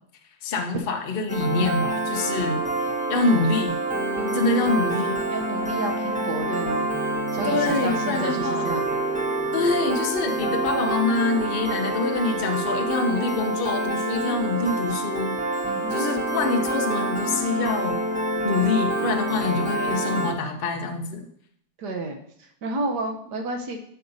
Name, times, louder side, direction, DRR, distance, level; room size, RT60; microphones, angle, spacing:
voice 1, 0.4-2.6 3.1-3.8 4.3-5.2 7.4-8.7 9.5-15.4 15.9-18.0 18.4-21.2, left 3 dB, 55° left, 3 dB, 0.6 m, -25 dB
Piano, 1.3-20.3, right 2 dB, 10° right, 0.5 m, -27 dB
voice 2, 4.1-4.5 5.3-6.9 7.3-8.9 15.6-16.0 21.8-23.8, right 2 dB, 60° right, 4 dB, 1.4 m, -31 dB
9.9 x 6.6 x 2.7 m, 0.69 s
omnidirectional pair, 2.2 m